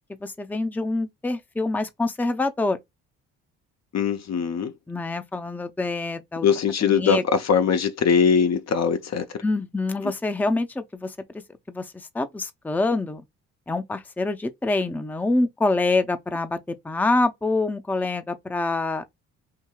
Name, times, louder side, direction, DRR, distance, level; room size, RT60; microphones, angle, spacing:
voice 1, 0.2-2.8 4.9-6.5 6.8-7.2 9.4-11.1 11.7-13.2 13.7-19.0, left 2 dB, 5° left, 0.6 m, -26 dB
voice 2, 3.9-4.7 6.4-9.3, left 6 dB, 45° left, 0.6 m, -21 dB
4.6 x 2.7 x 2.3 m
supercardioid pair, 55°, 36 cm